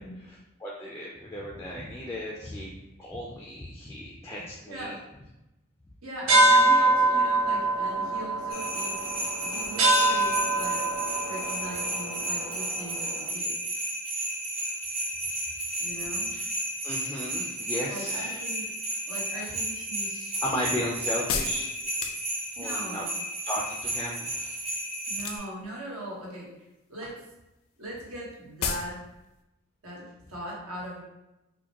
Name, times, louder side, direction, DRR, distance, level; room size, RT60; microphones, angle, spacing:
voice 1, 0.0-5.0 15.5-15.7 16.3-16.5 16.8-18.5 19.4-19.5 20.4-21.7 22.6-23.0 23.4-24.6, equal, 10° left, -3 dB, 0.3 m, -35 dB
voice 2, 4.7-5.0 6.0-10.9 11.2-13.5 15.8-16.3 17.9-18.7 19.1-20.4 22.6-23.1 25.1-26.5 26.9-27.2 27.8-29.0 29.8-31.0, right 1 dB, 80° right, -4 dB, 1.3 m, -40 dB
sound 1, 6.3-13.1, right 2 dB, 65° right, 0.8 m, -24 dB
sound 2, 8.5-25.4, right 1 dB, 30° right, 0.8 m, -33 dB
sound 3, 19.8-22.7 25.1-25.7 26.0-26.6 26.9-27.1 27.4-27.5 27.7-27.8 28.1-28.2 28.6-29.0 29.2-29.3, left 5 dB, 80° left, 0.4 m, -33 dB
4.9 x 2.2 x 2.9 m, 0.95 s
head